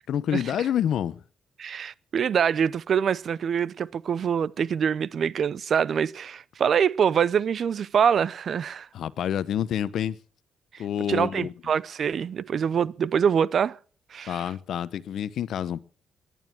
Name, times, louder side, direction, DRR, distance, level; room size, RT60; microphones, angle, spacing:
voice 1, 0.1-1.2 8.9-10.2 10.8-11.5 14.3-15.8, left 10 dB, 70° left, 0.9 m, -28 dB
voice 2, 1.6-8.9 11.1-13.8 14.1-14.4, right 7 dB, 60° right, 0.7 m, -25 dB
18.0 x 11.0 x 6.1 m
cardioid pair, 75°, 0 cm